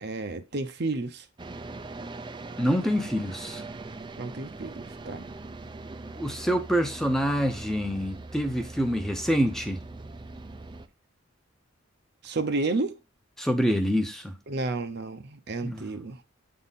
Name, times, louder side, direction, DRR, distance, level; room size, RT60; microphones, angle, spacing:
voice 1, 0.0-1.2 4.2-5.2 12.2-13.0 14.5-16.2, right 3 dB, 50° right, 0.7 m, -31 dB
sound 1, 1.4-10.9, right 3 dB, 20° right, 0.4 m, -41 dB
voice 2, 2.6-3.6 6.2-9.8 13.4-14.4 15.6-15.9, equal, ahead, 0.8 m, -26 dB
8.4 x 3.8 x 4.1 m
head